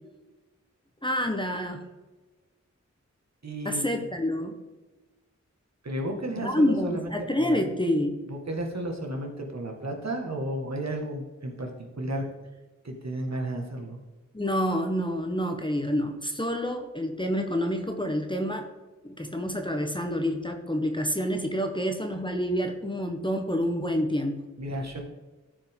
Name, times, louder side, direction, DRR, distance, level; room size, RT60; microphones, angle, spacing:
voice 1, 1.0-1.8 3.6-4.5 6.4-8.2 14.3-18.7 19.0-24.4, equal, 15° left, 4 dB, 1.1 m, -28 dB
voice 2, 3.4-4.0 5.8-7.6 8.3-12.3 12.8-14.0 24.6-25.0, right 1 dB, 60° right, 2 dB, 1.8 m, -33 dB
13.0 x 5.2 x 3.7 m, 1.2 s
cardioid pair, 45°, 30 cm